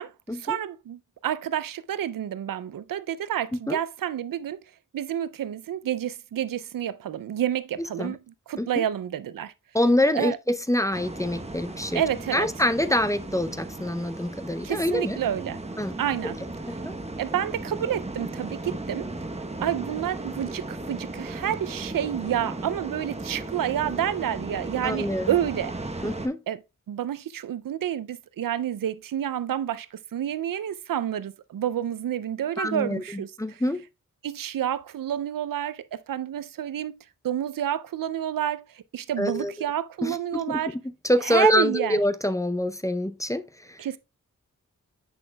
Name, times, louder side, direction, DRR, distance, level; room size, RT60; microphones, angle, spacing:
voice 1, 0.0-4.6 4.9-9.5 10.1-10.4 11.9-12.5 14.6-15.6 16.0-16.4 17.2-19.1 19.6-25.7 26.5-26.6 26.9-33.6 34.2-37.0 37.2-40.7 41.2-42.0 43.8-44.0, right 10 dB, 85° right, 0.5 m, -29 dB
voice 2, 9.7-12.0 12.3-15.2 15.8-15.9 16.7-16.9 24.8-25.3 26.0-26.4 32.6-33.8 39.2-39.5 40.0-40.6 41.0-43.4 43.7-43.8, left 1 dB, 10° left, 0.5 m, -25 dB
sound 1, 10.9-26.3, right 2 dB, 20° right, 0.9 m, -36 dB
8.0 x 6.0 x 2.2 m
wide cardioid pair, 65°, 32 cm